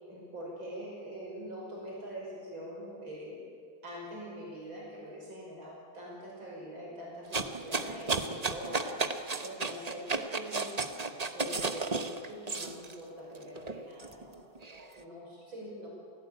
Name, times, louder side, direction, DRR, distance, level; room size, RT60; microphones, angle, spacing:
voice 1, 0.0-3.5 3.8-10.9 11.3-15.9, equal, 85° right, -3 dB, 6.6 m, -44 dB
sound 1, 7.3-12.9 13.4-14.8, right 3 dB, 25° right, 0.9 m, -33 dB
29.5 x 17.0 x 8.8 m, 2.2 s
omnidirectional pair, 2.1 m